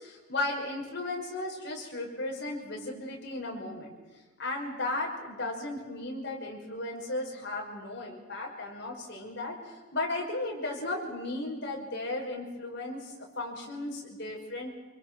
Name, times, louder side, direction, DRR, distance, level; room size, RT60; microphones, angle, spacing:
voice 1, 0.0-3.9 4.4-14.7, left 2 dB, 55° left, 0 dB, 6.0 m, -35 dB
26.0 x 24.0 x 6.3 m, 1.2 s
head